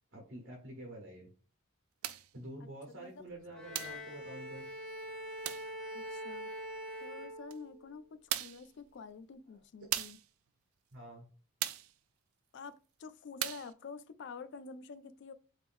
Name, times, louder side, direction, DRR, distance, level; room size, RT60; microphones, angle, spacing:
voice 1, 0.1-1.3 2.3-4.6 10.9-11.3, right 1 dB, 55° right, 1.0 m, -48 dB
sound 1, 2.0-2.3 3.7-4.1 5.4-5.7 7.5-7.6 8.3-8.7 9.9-10.3 11.6-11.9 13.4-13.7, right 13 dB, 85° right, 0.3 m, -37 dB
Bowed string instrument, 3.5-8.0, equal, ahead, 0.6 m, -44 dB
voice 2, 5.9-6.5 7.0-8.0 8.4-10.2 12.5-12.7 13.0-15.3, left 5 dB, 55° left, 0.4 m, -48 dB
3.6 x 3.2 x 2.5 m
head